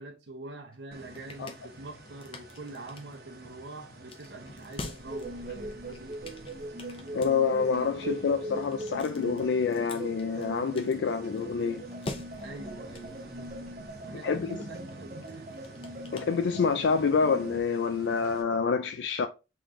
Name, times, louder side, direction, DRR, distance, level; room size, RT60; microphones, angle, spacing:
voice 1, 0.0-6.3 12.4-15.6, right 2 dB, 90° right, 0.8 m, -45 dB
sound 1, 0.7-17.0, left 2 dB, 30° left, 0.5 m, -47 dB
sound 2, 0.9-18.4, right 2 dB, 60° right, 1.0 m, -51 dB
sound 3, 5.0-17.6, right 1 dB, 40° right, 0.5 m, -41 dB
voice 2, 7.1-11.9 14.1-14.6 16.1-19.3, left 5 dB, 85° left, 0.4 m, -27 dB
3.8 x 3.2 x 3.7 m
head